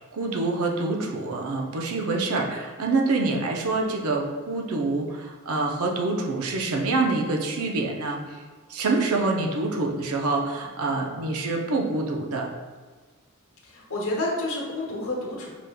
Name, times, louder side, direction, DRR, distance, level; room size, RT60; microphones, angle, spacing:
voice 1, 0.0-8.4 8.7-12.5, right 3 dB, 70° right, 1 dB, 0.6 m, -26 dB
voice 2, 9.1-9.4 13.6-15.6, left 1 dB, 65° left, -2 dB, 0.9 m, -30 dB
4.9 x 3.4 x 2.2 m, 1.4 s
head